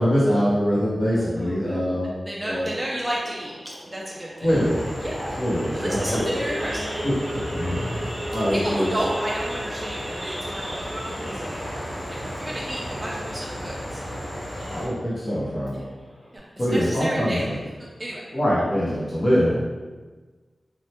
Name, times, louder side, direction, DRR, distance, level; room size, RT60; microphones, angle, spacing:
voice 1, 0.0-2.1 2.4-2.8 4.4-4.8 5.4-6.2 7.3-9.0 14.7-15.8 16.6-17.6 18.3-19.5, equal, 45° left, -8 dB, 0.7 m, -23 dB
voice 2, 1.1-1.9 2.2-4.5 5.0-5.4 5.6-7.4 8.5-14.1 14.6-14.8 15.7-15.9 16.3-17.6 18.0-18.2, right 1 dB, 20° right, -4 dB, 0.3 m, -32 dB
Idling / Accelerating revving vroom / Sawing, 2.5-13.6 14.0-14.2 14.4-14.5 15.0-15.3 15.7-15.8 16.0-16.4, equal, 75° right, 0.7 m, -35 dB
sound 1, 4.4-14.9, equal, 65° left, 0.9 m, -34 dB
3.1 x 2.1 x 2.8 m, 1.3 s
wide cardioid pair, 100°, 0 cm